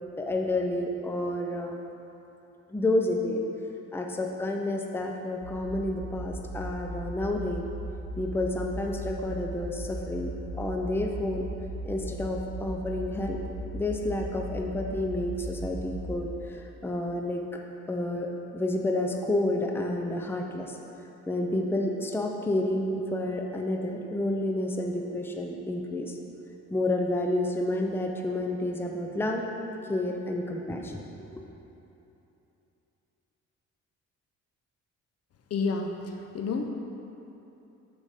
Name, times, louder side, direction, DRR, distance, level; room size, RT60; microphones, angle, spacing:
voice 1, 0.2-1.8 2.7-3.4 3.9-7.6 8.2-10.3 10.6-11.4 11.9-13.4 13.7-17.4 17.9-20.7 21.3-26.2 26.7-29.4 29.8-31.0 31.3-31.4, left 1 dB, 5° left, 1 dB, 0.6 m, -30 dB
sound 1, 5.4-16.2, right 1 dB, 30° left, 1.1 m, -38 dB
voice 2, 35.5-36.7, left 4 dB, 55° left, 4 dB, 0.7 m, -30 dB
6.4 x 4.9 x 5.1 m, 3.0 s
cardioid pair, 90°, 30 cm